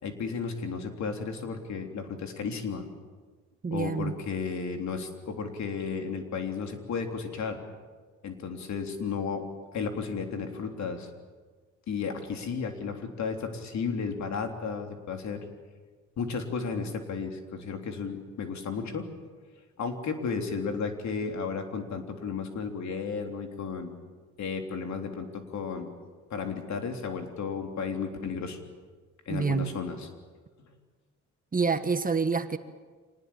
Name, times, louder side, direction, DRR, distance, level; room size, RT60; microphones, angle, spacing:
voice 1, 0.0-2.9 3.7-7.6 8.2-9.4 9.7-11.1 11.9-15.4 16.2-19.1 19.8-24.0 24.4-25.9 26.3-28.6 29.3-30.1, left 5 dB, 65° left, 4 dB, 3.6 m, -33 dB
voice 2, 3.6-4.2 29.3-29.7 31.5-32.6, right 5 dB, 30° right, 10 dB, 1.5 m, -27 dB
25.5 x 19.5 x 8.8 m, 1.5 s
cardioid pair, 90°, 30 cm